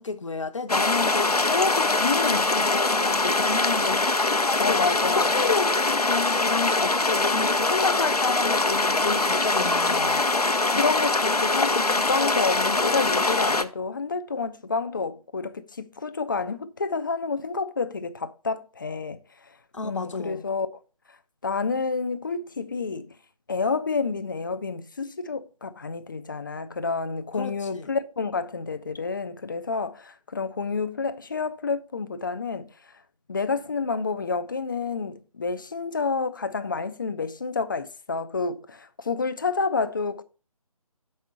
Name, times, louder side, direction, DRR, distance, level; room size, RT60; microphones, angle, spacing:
voice 1, 0.0-4.8 5.1-10.2 19.7-20.4 27.3-27.9, left 4 dB, 55° left, 0.9 m, -30 dB
sound 1, 0.7-13.6, left 3 dB, 80° left, 0.9 m, -23 dB
voice 2, 2.0-2.5 4.6-5.3 10.7-19.2 19.8-20.7 21.4-23.2 23.5-32.7 33.3-40.2, left 4 dB, 35° left, 0.6 m, -29 dB
7.3 x 5.5 x 6.1 m
figure-of-eight pair, 150°, 19 cm